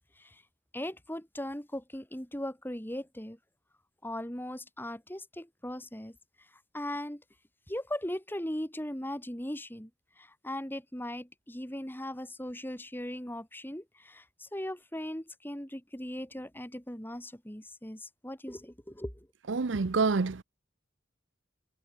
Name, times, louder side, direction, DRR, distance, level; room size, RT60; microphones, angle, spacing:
voice 1, 0.7-3.4 4.0-6.2 6.7-7.2 7.7-9.9 10.2-19.3, left 1 dB, 10° left, 3.1 m, -38 dB
voice 2, 19.5-20.4, right 4 dB, 70° right, 0.7 m, -27 dB
head